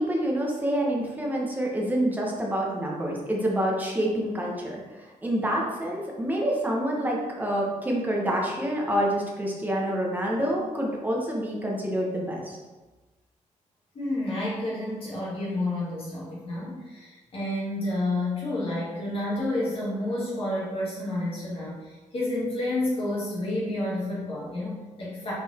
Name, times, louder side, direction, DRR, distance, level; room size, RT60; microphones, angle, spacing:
voice 1, 0.0-4.8 5.2-12.6, right 1 dB, 15° right, -2 dB, 1.1 m, -27 dB
voice 2, 13.9-25.3, left 1 dB, 45° left, -7 dB, 2.0 m, -30 dB
5.7 x 4.3 x 4.2 m, 1.2 s
wide cardioid pair, 175°, 13 cm